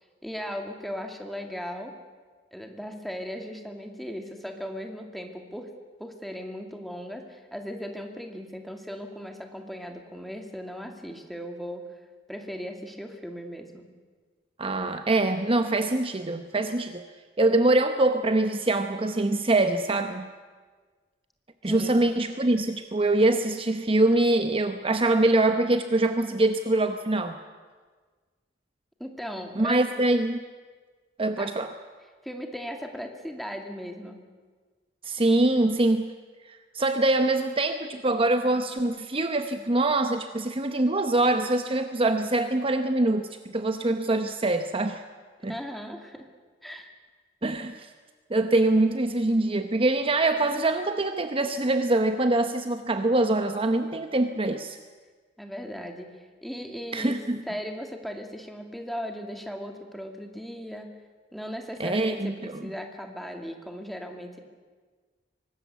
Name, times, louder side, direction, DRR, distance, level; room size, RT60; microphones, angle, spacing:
voice 1, 0.2-1.9 2.5-5.7 6.0-11.8 12.3-13.9 21.6-22.0 29.0-29.8 31.4-31.5 32.2-34.2 45.5-46.3 46.6-46.9 55.4-57.2 57.5-60.9 61.3-64.4, equal, ahead, 4 dB, 2.3 m, -37 dB
voice 2, 14.6-17.1 17.4-20.3 21.6-27.4 29.6-30.4 31.2-31.7 35.0-36.1 36.5-45.0 45.4-45.5 47.4-47.9 48.3-54.8 56.9-57.4 61.8-62.6, right 2 dB, 30° right, 8 dB, 0.9 m, -24 dB
24.0 x 19.5 x 8.2 m, 1.5 s
head